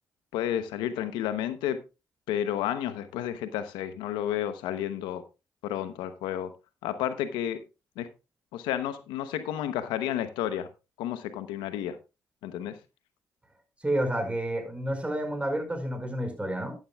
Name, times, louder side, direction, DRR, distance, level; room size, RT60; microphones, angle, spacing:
voice 1, 0.3-1.8 2.3-5.2 5.6-6.5 6.8-7.6 8.0-8.1 8.5-10.7 11.0-12.0 12.4-12.8, left 11 dB, 90° left, 0.8 m, -31 dB
voice 2, 13.8-16.8, right 1 dB, 15° right, 5.2 m, -30 dB
12.5 x 11.0 x 2.3 m
supercardioid pair, 50°, 8 cm